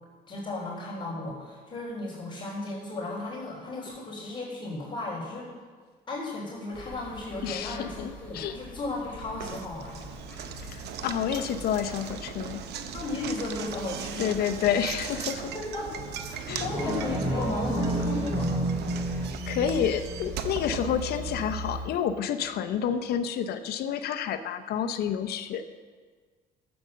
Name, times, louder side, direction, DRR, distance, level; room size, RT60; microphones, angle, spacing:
voice 1, 0.3-5.5 6.1-10.0 12.9-14.4 15.7-18.7, left 2 dB, 30° left, -5 dB, 3.6 m, -35 dB
sound 1, 6.7-21.8, equal, 10° left, 3.4 m, -42 dB
voice 2, 7.4-8.6 10.7-12.6 14.2-15.5 16.5-16.7 19.5-25.6, left 8 dB, 70° left, 9 dB, 0.7 m, -29 dB
Knock, 9.4-21.5, right 8 dB, 75° right, 0.8 m, -39 dB
sound 2, 16.5-21.5 21.9-22.0, right 1 dB, 20° right, 3.0 m, -31 dB
12.5 x 7.9 x 6.3 m, 1.5 s
cardioid pair, 110°, 17 cm